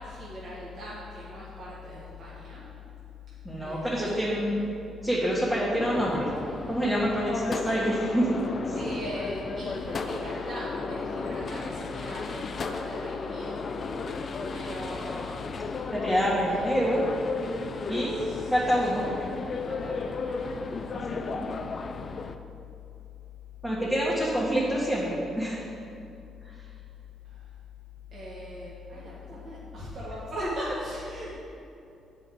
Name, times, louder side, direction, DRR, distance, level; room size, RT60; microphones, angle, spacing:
voice 1, 0.0-2.6 3.6-4.4 8.7-13.6 14.5-15.4 16.5-16.7 18.1-18.5 19.0-19.1 19.5-21.8 27.3-27.4 28.1-31.3, left 1 dB, 60° right, -8 dB, 1.5 m, -39 dB
voice 2, 3.4-4.6 5.0-6.3 6.7-8.4 15.9-17.1 17.9-18.2 18.5-19.0 21.1-21.5 23.6-25.7, equal, 5° right, -9 dB, 1.4 m, -26 dB
sound 1, 5.8-22.4, left 4 dB, 45° left, 0.4 m, -34 dB
8.2 x 4.9 x 3.8 m, 2.7 s
cardioid pair, 90°, 0 cm